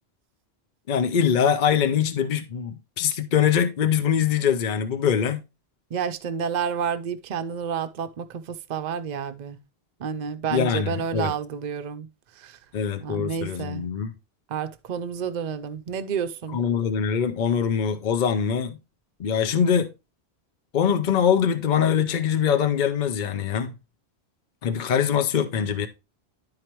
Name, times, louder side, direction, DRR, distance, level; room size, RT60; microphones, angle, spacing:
voice 1, 0.9-5.4 10.5-11.3 12.7-14.1 16.5-18.8 19.2-19.9 20.7-23.7 24.6-25.9, left 8 dB, 50° left, 0.7 m, -23 dB
voice 2, 5.9-9.6 10.0-12.1 12.4-12.6 13.0-13.9 14.5-16.6, right 7 dB, 50° right, 0.6 m, -30 dB
10.5 x 4.9 x 3.0 m
omnidirectional pair, 1.1 m